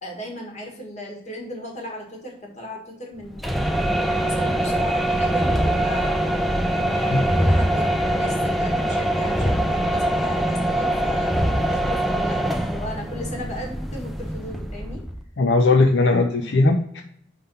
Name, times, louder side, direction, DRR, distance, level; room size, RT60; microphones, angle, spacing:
voice 1, 0.0-15.0, equal, 35° left, 0 dB, 1.6 m, -36 dB
sound 1, 3.3-15.2, right 1 dB, ahead, 0.4 m, -23 dB
voice 2, 15.4-17.0, left 3 dB, 65° left, 3 dB, 0.5 m, -18 dB
5.5 x 3.8 x 5.3 m, 0.68 s
head